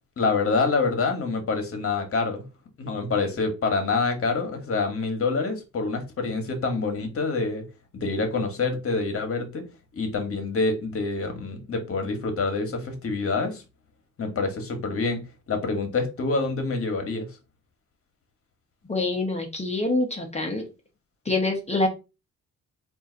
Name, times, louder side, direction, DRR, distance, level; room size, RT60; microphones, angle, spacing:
voice 1, 0.2-2.4 2.8-7.6 7.9-9.6 9.9-13.6 14.2-15.2 15.5-17.3, left 3 dB, 45° left, 1.4 m, -26 dB
voice 2, 18.9-20.6 21.2-21.9, left 2 dB, 20° left, 1.1 m, -25 dB
3.9 x 2.7 x 3.9 m
cardioid pair, 90°, 30 cm